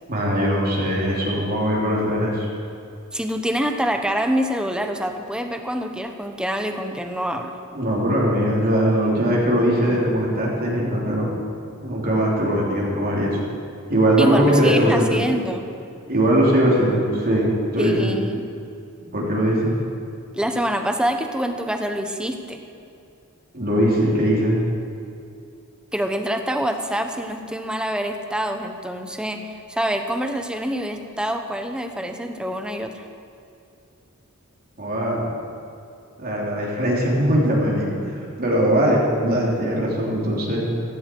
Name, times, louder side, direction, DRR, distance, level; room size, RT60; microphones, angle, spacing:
voice 1, 0.1-2.5 7.7-11.4 11.8-13.4 13.9-15.2 16.1-18.1 19.1-19.7 23.5-24.6 34.8-35.2 36.2-40.6, equal, 45° right, -4 dB, 3.2 m, -20 dB
voice 2, 3.1-7.6 14.2-15.7 17.8-18.4 20.3-22.6 25.9-33.1, equal, 5° right, 5 dB, 1.0 m, -26 dB
16.0 x 15.5 x 4.6 m, 2.5 s
head